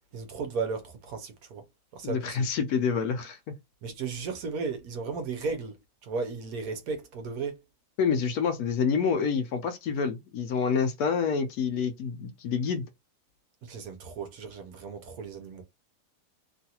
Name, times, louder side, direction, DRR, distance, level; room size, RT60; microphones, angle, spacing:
voice 1, 0.1-1.6 1.9-2.5 3.8-7.6 13.6-15.6, right 4 dB, 70° right, 1.1 m, -35 dB
voice 2, 2.0-3.4 8.0-12.9, left 6 dB, 70° left, 1.0 m, -27 dB
3.0 x 2.5 x 2.8 m
omnidirectional pair, 1.7 m